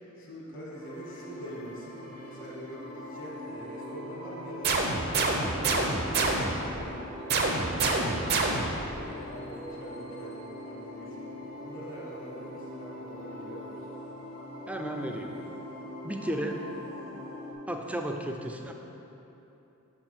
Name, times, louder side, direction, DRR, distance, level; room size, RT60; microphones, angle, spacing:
voice 1, 0.2-2.0 2.2-4.7 5.1-8.4 8.9-11.2 11.5-13.9, right 1 dB, 60° left, -4 dB, 1.4 m, -44 dB
sound 1, 0.7-17.5, left 1 dB, 90° left, 1.5 m, -42 dB
sound 2, 4.6-6.7 7.3-8.9, right 3 dB, 50° right, 0.6 m, -27 dB
voice 2, 14.7-15.3 16.0-16.6 17.7-18.7, right 1 dB, 5° right, 3 dB, 0.4 m, -33 dB
5.9 x 4.5 x 5.9 m, 3.0 s
head